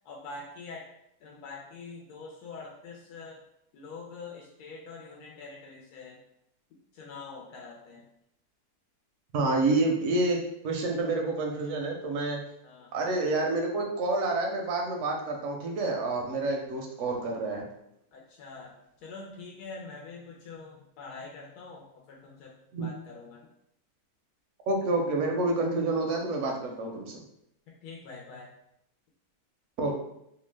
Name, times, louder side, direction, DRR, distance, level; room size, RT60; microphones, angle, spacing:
voice 1, 0.0-0.9 1.2-3.4 3.7-6.2 6.9-8.0 12.6-12.9 18.1-18.7 19.0-22.5 22.8-23.4 27.8-28.5, left 4 dB, 90° left, -2 dB, 1.1 m, -44 dB
voice 2, 9.3-12.4 12.9-17.7 22.7-22.9 24.7-27.2 29.8-30.0, right 2 dB, 65° right, 1 dB, 0.8 m, -28 dB
2.8 x 2.2 x 3.2 m, 0.78 s
omnidirectional pair, 1.6 m